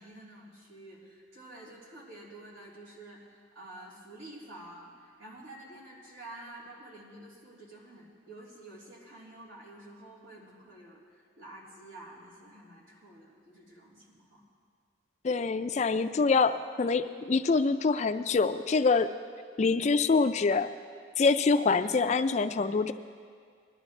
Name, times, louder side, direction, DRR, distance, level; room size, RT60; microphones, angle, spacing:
voice 1, 0.0-14.4 21.8-22.0, right 1 dB, 90° right, -6 dB, 3.6 m, -49 dB
voice 2, 15.2-19.1 19.6-20.7 21.2-22.9, left 4 dB, 35° left, 11 dB, 0.3 m, -25 dB
20.0 x 12.0 x 3.2 m, 2.1 s
head